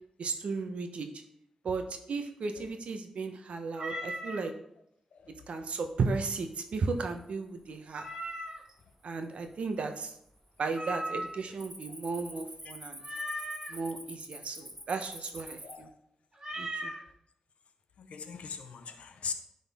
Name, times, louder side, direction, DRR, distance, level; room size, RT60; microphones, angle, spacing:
voice 1, 0.2-1.1 1.6-4.5 5.5-8.1 9.0-10.1 10.6-13.0 13.7-15.9 16.6-16.9, right 4 dB, 75° right, 6 dB, 0.9 m, -35 dB
Meow, 3.7-4.5 7.9-8.7 10.7-11.5 13.0-13.8 16.4-17.0, right 1 dB, 35° right, 1.9 m, -37 dB
Cricket, 6.8-7.2 7.7-8.1 8.7-8.8 9.4-10.0 10.3-10.6 10.9-15.7, right 1 dB, 15° right, 1.3 m, -47 dB
voice 2, 18.0-19.3, left 6 dB, 80° left, 8 dB, 0.7 m, -41 dB
10.5 x 4.0 x 3.6 m, 0.74 s
cardioid pair, 70°, 2 cm